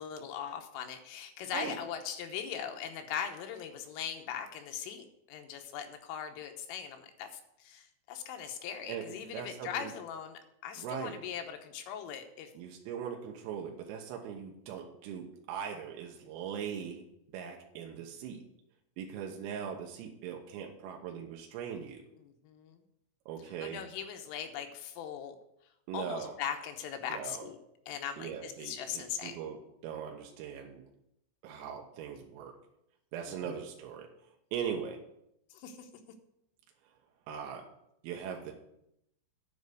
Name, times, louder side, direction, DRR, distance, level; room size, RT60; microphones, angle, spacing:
voice 1, 0.0-7.3 7.6-12.5 22.2-22.8 23.6-25.4 25.9-27.6 27.9-29.4 33.3-33.6 35.5-35.9, left 8 dB, 85° left, 5 dB, 3.5 m, -40 dB
voice 2, 8.9-9.9 10.8-11.2 12.6-17.1 17.3-18.4 19.0-22.0 23.3-23.8 25.9-26.4 27.1-27.5 28.2-29.6 29.8-30.8 31.4-32.6 33.1-34.1 34.5-35.0 37.3-37.7 38.0-38.5, right 8 dB, 85° right, 1 dB, 3.8 m, -40 dB
9.8 x 5.3 x 7.9 m, 0.79 s
omnidirectional pair, 5.8 m